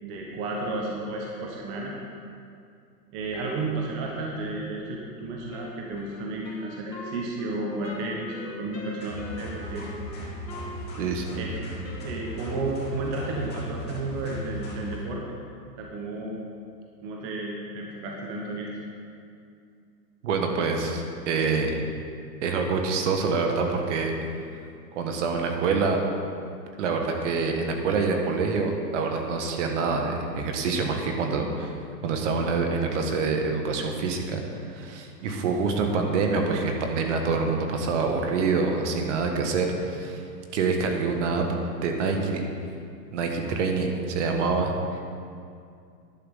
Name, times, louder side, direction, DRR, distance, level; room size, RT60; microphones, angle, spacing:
voice 1, 0.0-1.9 3.1-9.9 11.3-11.6 12.0-15.2 15.8-16.4 17.0-18.7, right 2 dB, 25° right, -1 dB, 1.1 m, -32 dB
Wind instrument woodwind instrument, 5.5-13.0, left 2 dB, 80° left, 2.2 m, -43 dB
sound 1, 9.0-15.0, equal, 20° left, 2.8 m, -37 dB
voice 2, 11.0-11.4 20.2-21.7 22.4-24.1 24.9-26.0 26.8-41.5 41.8-42.5 43.1-45.0, right 4 dB, 45° right, 3 dB, 1.5 m, -26 dB
11.0 x 5.9 x 7.2 m, 2.4 s
hypercardioid pair, 145°, 49 cm